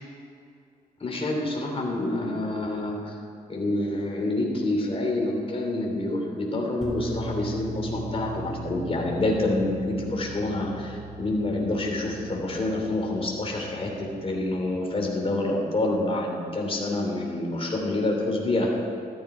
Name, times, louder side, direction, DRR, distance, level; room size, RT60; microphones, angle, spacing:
voice 1, 1.0-3.2 3.5-18.8, left 2 dB, 35° left, -1 dB, 3.0 m, -27 dB
sound 1, 6.8-14.9, right 1 dB, ahead, 2.5 m, -39 dB
13.5 x 12.0 x 5.0 m, 2.5 s
cardioid pair, 75°, 17 cm